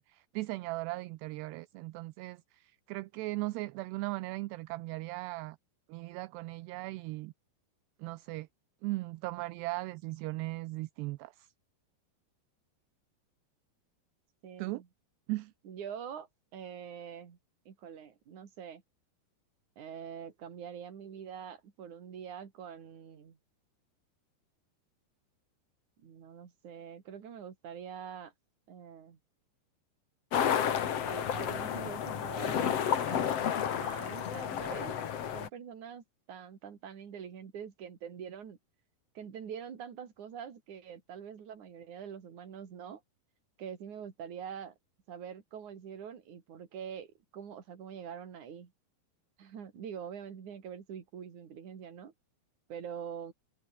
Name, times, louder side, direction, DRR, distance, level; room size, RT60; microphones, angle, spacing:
voice 1, 0.0-5.6 5.9-7.3 8.0-8.5 8.8-11.5 14.6-14.8 15.3-15.5, right 20 dB, 80° right, 2.8 m, -38 dB
voice 2, 14.4-14.9 15.6-17.4 17.7-18.8 19.8-23.4 26.0-28.3 28.7-29.2 31.0-33.5 33.8-34.9 35.3-38.6 39.2-43.0 43.6-44.7 45.1-48.7 49.4-52.1 52.7-53.3, right 8 dB, 45° right, 4.1 m, -45 dB
sound 1, 30.3-35.5, left 9 dB, 50° left, 2.0 m, -31 dB
omnidirectional pair, 4.9 m